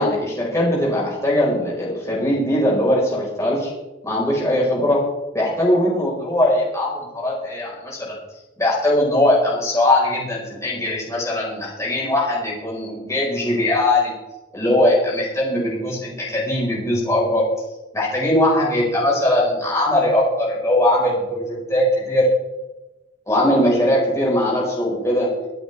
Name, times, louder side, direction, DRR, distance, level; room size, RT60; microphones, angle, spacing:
voice 1, 0.0-3.7 4.0-5.1 5.3-8.2 8.6-14.1 14.5-17.4 17.9-22.2 23.3-25.3, left 1 dB, 15° left, -5 dB, 4.6 m, -20 dB
24.5 x 9.2 x 3.4 m, 1.0 s
head